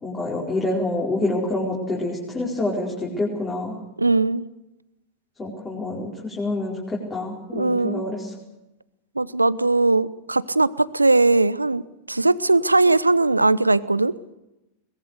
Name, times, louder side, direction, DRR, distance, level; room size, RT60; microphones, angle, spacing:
voice 1, 0.0-3.8 5.4-8.3, left 2 dB, 15° left, -4 dB, 5.1 m, -27 dB
voice 2, 4.0-4.4 7.5-8.0 9.2-11.8 12.1-14.1, right 2 dB, 80° right, 19 dB, 0.7 m, -19 dB
22.5 x 20.5 x 6.7 m, 0.94 s
figure-of-eight pair, 90°, 0 cm